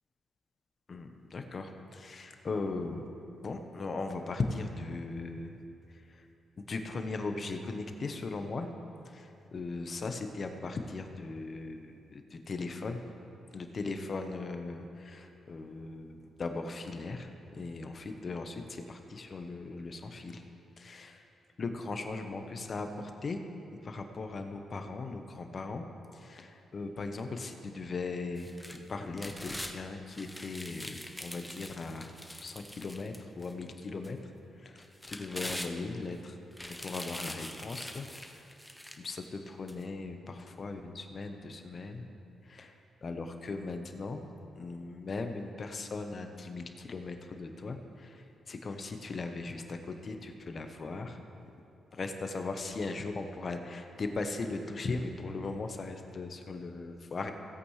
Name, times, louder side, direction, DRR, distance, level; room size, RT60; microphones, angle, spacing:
voice 1, 0.9-3.1 3.4-5.5 6.6-8.7 9.1-13.0 13.5-20.4 20.8-21.2 21.6-23.4 23.8-25.8 26.1-32.1 32.4-34.2 34.6-36.4 36.8-38.1 38.3-38.5 39.0-42.0 42.5-42.7 43.0-44.3 44.5-51.5 51.9-57.3, left 3 dB, 50° left, 6 dB, 1.0 m, -38 dB
sound 1, 28.4-29.7 30.1-33.5 34.0-34.1 34.8-36.1 36.5-39.2 39.7-39.8, left 1 dB, 10° left, 0.9 m, -43 dB
17.0 x 8.4 x 3.3 m, 2.7 s
supercardioid pair, 50°, 0 cm